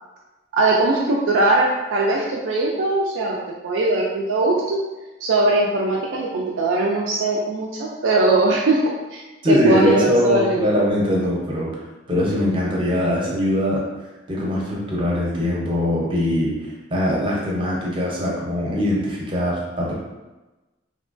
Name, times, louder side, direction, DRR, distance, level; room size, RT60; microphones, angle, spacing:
voice 1, 0.5-3.4 3.6-4.8 5.2-8.8 9.1-9.2 9.5-10.7, right 2 dB, 90° right, -3 dB, 0.4 m, -20 dB
voice 2, 9.4-11.7 12.1-13.8 14.3-16.5 16.9-19.9, equal, 25° right, -4 dB, 0.6 m, -21 dB
2.9 x 2.3 x 2.4 m, 1.1 s
head